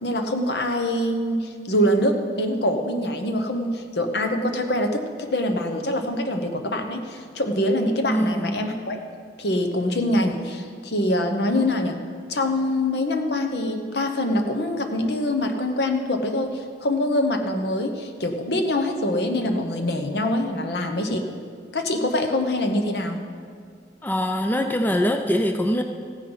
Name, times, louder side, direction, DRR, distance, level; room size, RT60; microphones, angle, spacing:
voice 1, 0.0-9.0 9.4-12.0 12.3-21.2 21.7-23.2, left 1 dB, 75° left, 5 dB, 1.0 m, -24 dB
voice 2, 8.1-8.6 24.0-25.8, equal, 10° left, 5 dB, 0.4 m, -23 dB
15.5 x 9.7 x 4.0 m, 2.1 s
head